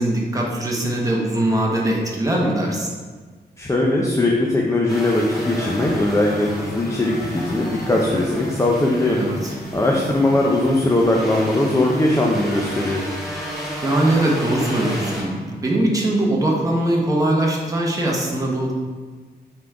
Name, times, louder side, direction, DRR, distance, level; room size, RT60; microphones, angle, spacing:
voice 1, 0.0-2.9 9.0-10.0 13.8-18.7, right 1 dB, 20° right, -2 dB, 1.1 m, -21 dB
voice 2, 3.6-9.2 9.7-13.0, left 1 dB, 15° left, -2 dB, 0.5 m, -20 dB
sound 1, 4.9-15.2, equal, ahead, 1.4 m, -32 dB
5.8 x 3.7 x 4.7 m, 1.4 s
wide cardioid pair, 160°, 18 cm